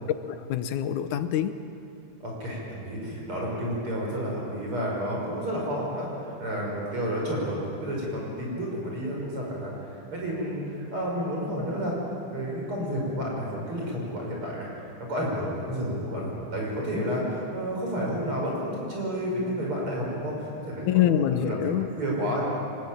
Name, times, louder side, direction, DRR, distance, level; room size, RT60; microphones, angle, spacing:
voice 1, 0.3-1.6 20.9-21.9, left 11 dB, 85° left, 10 dB, 2.4 m, -25 dB
voice 2, 2.2-12.0 12.3-14.7 15.0-21.7 22.0-22.4, equal, 45° right, -2 dB, 6.5 m, -31 dB
23.5 x 20.5 x 8.9 m, 2.7 s
omnidirectional pair, 3.4 m